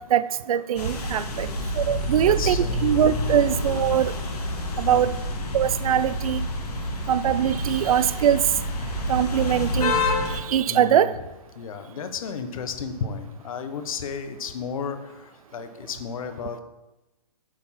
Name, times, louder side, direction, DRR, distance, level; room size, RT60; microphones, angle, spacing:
voice 1, 0.0-1.5 1.8-2.6 2.8-4.1 4.8-5.1 5.5-6.5 7.1-8.4 9.1-10.0 10.5-11.1, right 10 dB, 65° right, 15 dB, 0.4 m, -22 dB
sound 1, 0.8-10.4, left 1 dB, 90° left, 1.9 m, -28 dB
voice 2, 1.3-1.6 1.9-3.1 3.3-3.5 4.9-5.2 10.7-11.1 11.5-16.6, left 6 dB, 60° left, 8 dB, 0.9 m, -34 dB
7.4 x 4.3 x 5.7 m, 1.1 s
hypercardioid pair, 150°, 20 cm